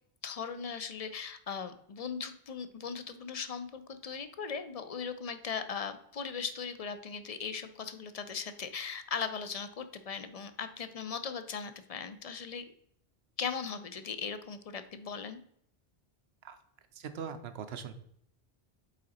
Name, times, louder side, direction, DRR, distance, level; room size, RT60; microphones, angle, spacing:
voice 1, 0.2-12.6 13.4-15.4, left 6 dB, 50° left, 10 dB, 0.5 m, -38 dB
voice 2, 16.9-17.9, right 7 dB, 85° right, 10 dB, 0.9 m, -41 dB
8.2 x 3.8 x 4.1 m, 0.70 s
omnidirectional pair, 1.0 m